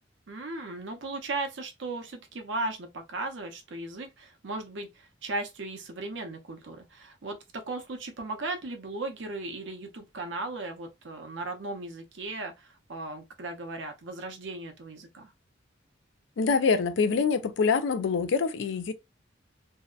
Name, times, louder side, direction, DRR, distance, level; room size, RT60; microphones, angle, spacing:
voice 1, 0.3-15.3, right 2 dB, 80° right, 0.7 m, -37 dB
voice 2, 16.4-18.9, left 5 dB, 85° left, 0.4 m, -25 dB
2.7 x 2.1 x 2.3 m
head